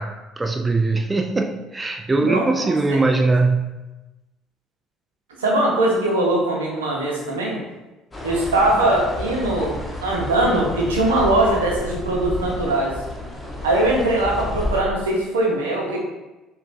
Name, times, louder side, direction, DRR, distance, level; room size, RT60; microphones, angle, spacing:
voice 1, 0.0-3.8, right 3 dB, 20° right, 4 dB, 0.3 m, -21 dB
voice 2, 2.2-3.3 5.4-7.6 8.2-9.7 10.0-12.9 13.6-16.0, right 1 dB, 85° right, -2 dB, 0.7 m, -21 dB
sound 1, 8.1-14.8, left 1 dB, 20° left, 0.9 m, -31 dB
5.0 x 2.3 x 2.6 m, 1.1 s
hypercardioid pair, 55°, 0 cm